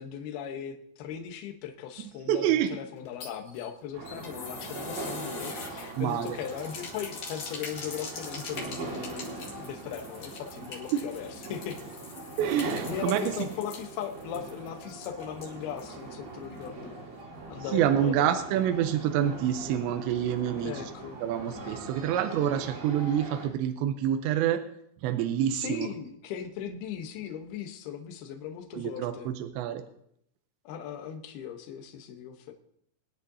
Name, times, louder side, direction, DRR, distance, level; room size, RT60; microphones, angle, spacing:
voice 1, 0.0-11.8 12.6-16.9 17.5-18.3 20.6-21.2 25.5-29.3 30.6-32.5, left 8 dB, 70° left, 5 dB, 2.6 m, -38 dB
voice 2, 2.0-2.7 6.0-6.4 10.9-11.0 12.4-13.5 17.7-20.9 21.2-24.6 25.0-25.9 28.7-29.8, right 10 dB, 80° right, 6 dB, 2.9 m, -27 dB
sound 1, 3.0-15.9 16.2-16.3 16.6-16.7, left 4 dB, 50° left, 3.1 m, -44 dB
sound 2, 3.9-23.5, right 2 dB, 40° right, 3.0 m, -41 dB
24.0 x 10.5 x 2.8 m, 0.70 s
omnidirectional pair, 5.5 m